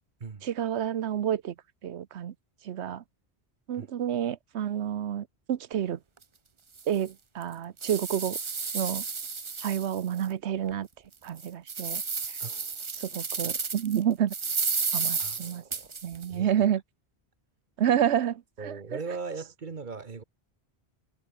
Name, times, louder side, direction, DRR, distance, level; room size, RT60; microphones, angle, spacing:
voice 1, 0.4-1.5 1.8-2.3 2.6-3.0 3.7-6.0 6.9-8.4 8.7-9.0 9.6-10.9 11.2-12.0 12.3-12.4 12.9-14.3 14.9-15.6 16.0-16.8 17.8-19.0, right 10 dB, 85° right, 1.1 m, -29 dB
sound 1, 6.2-6.3 6.8-6.9 7.4-10.2 10.7-10.8 11.3-14.0 14.3-16.3, right 5 dB, 30° right, 0.7 m, -32 dB
voice 2, 12.4-12.9 15.2-15.9 16.3-16.7 18.6-20.2, right 4 dB, 45° right, 1.3 m, -39 dB
omnidirectional pair, 1.1 m